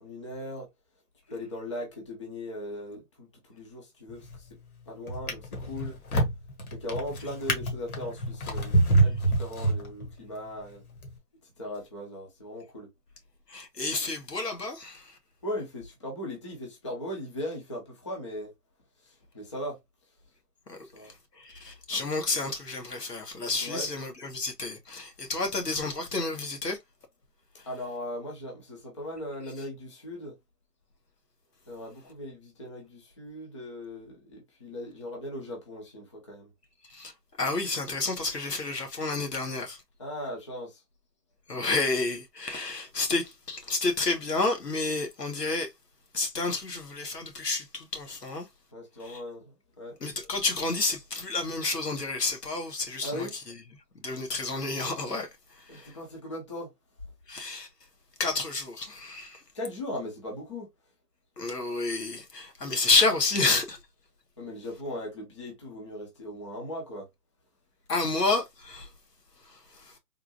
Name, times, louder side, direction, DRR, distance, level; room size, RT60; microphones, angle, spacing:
voice 1, 0.0-0.7 1.3-4.5 4.9-6.0 6.7-10.8 11.4-12.9 15.4-18.5 19.0-19.8 20.9-21.1 23.6-23.9 27.7-30.3 31.7-36.5 40.0-40.8 48.7-50.0 53.0-53.3 55.7-56.7 59.5-60.7 64.4-67.1, left 1 dB, 20° left, 0.6 m, -38 dB
Drawer open or close, 4.1-4.5 5.1-10.3 11.0-11.1, right 2 dB, 65° left, 1.5 m, -27 dB
voice 2, 13.5-15.2 20.7-20.8 21.0-26.8 27.6-27.7 36.9-37.1 37.4-39.8 41.5-45.7 46.1-48.5 49.0-49.2 50.0-53.3 54.0-55.9 57.3-57.7 58.2-59.4 61.4-63.8 67.9-68.9 69.4-70.0, left 3 dB, 85° left, 1.5 m, -30 dB
3.6 x 2.4 x 2.8 m
figure-of-eight pair, 150°, 47 cm